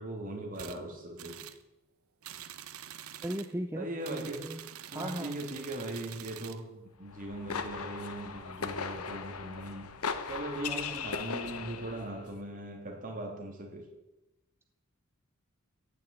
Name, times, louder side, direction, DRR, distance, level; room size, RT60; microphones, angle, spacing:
voice 1, 0.0-1.5 3.7-4.5 4.9-9.9 10.3-13.9, right 1 dB, 40° right, 1 dB, 3.2 m, -39 dB
sound 1, 0.5-0.8 1.2-1.6 2.2-3.5 4.0-6.6, right 10 dB, 75° right, 0.9 m, -46 dB
voice 2, 3.2-4.6 4.9-5.4 10.7-11.0, right 1 dB, 10° right, 6 dB, 0.7 m, -38 dB
sound 2, 7.1-12.1, left 5 dB, 85° left, 1.1 m, -38 dB
15.5 x 6.9 x 9.1 m, 0.99 s
head